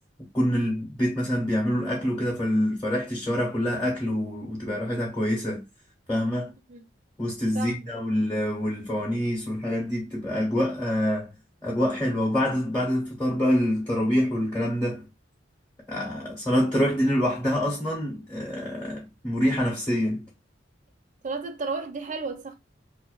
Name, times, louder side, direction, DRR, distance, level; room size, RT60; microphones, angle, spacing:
voice 1, 0.3-5.6 6.1-6.5 7.2-11.3 11.6-15.0 15.9-20.2, equal, 15° left, 0.8 m, -26 dB
voice 2, 7.5-7.9 21.2-22.5, right 4 dB, 40° right, 0.5 m, -33 dB
2.4 x 2.2 x 2.3 m
head